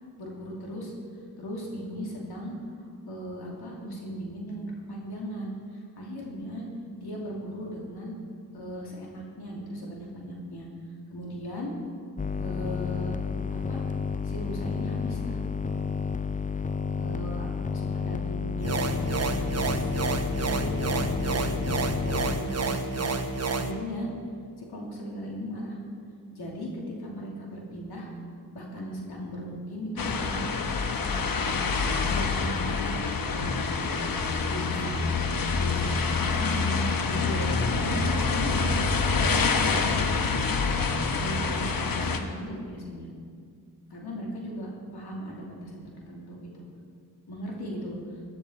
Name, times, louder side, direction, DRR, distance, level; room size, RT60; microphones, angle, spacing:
voice 1, 0.2-0.9 1.4-2.5 3.1-5.5 6.0-6.7 7.0-8.1 8.5-10.7 11.1-11.7 12.4-13.2 13.5-13.8 14.2-15.9 17.0-19.9 20.4-21.7 22.0-23.1 23.6-24.1 24.6-25.8 26.3-28.1 28.5-30.5 30.9-31.7 32.1-32.9 33.2-33.8 34.5-34.9 35.6-39.3 39.6-40.9 41.2-43.1 43.9-46.6 47.3-48.2, equal, 80° left, -2 dB, 2.8 m, -38 dB
sound 1, 12.2-22.4, left 5 dB, 20° left, 0.5 m, -31 dB
sound 2, 18.6-23.7, right 3 dB, 40° right, 1.1 m, -29 dB
sound 3, 30.0-42.2, left 4 dB, 60° left, 1.2 m, -26 dB
16.0 x 9.9 x 4.4 m, 2.2 s
cardioid pair, 45°, 38 cm